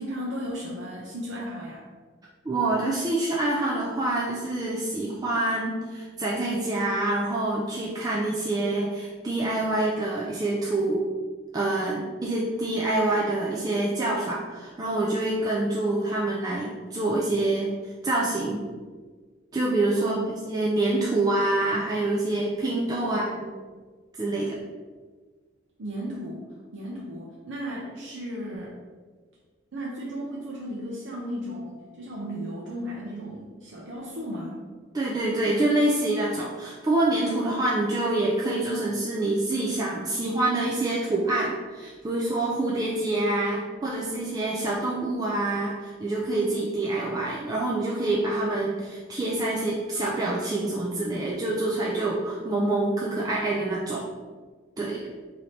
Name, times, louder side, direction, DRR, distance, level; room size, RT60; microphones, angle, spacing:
voice 1, 0.0-1.8 20.0-20.3 23.0-23.3 25.8-26.4 26.7-28.8 29.7-34.6, equal, 70° right, -5 dB, 0.6 m, -35 dB
voice 2, 2.4-11.1 11.5-18.7 19.5-23.5 24.2-24.6 34.9-54.1 54.8-55.0, right 2 dB, 20° right, -5 dB, 0.3 m, -26 dB
3.2 x 2.8 x 4.0 m, 1.5 s
head